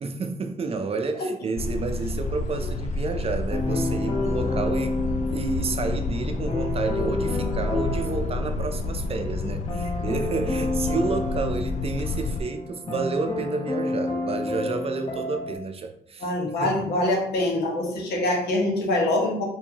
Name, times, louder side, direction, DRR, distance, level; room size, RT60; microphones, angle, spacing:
voice 1, 0.0-16.3 16.6-16.9, right 4 dB, 35° right, 7 dB, 0.5 m, -30 dB
sound 1, 1.6-12.4, left 3 dB, 45° left, 0.4 m, -29 dB
sound 2, 3.5-15.6, left 2 dB, 30° left, 0.9 m, -30 dB
voice 2, 16.2-19.4, left 1 dB, 90° left, -1 dB, 1.1 m, -24 dB
4.4 x 2.7 x 2.8 m, 0.74 s
cardioid pair, 95°, 16 cm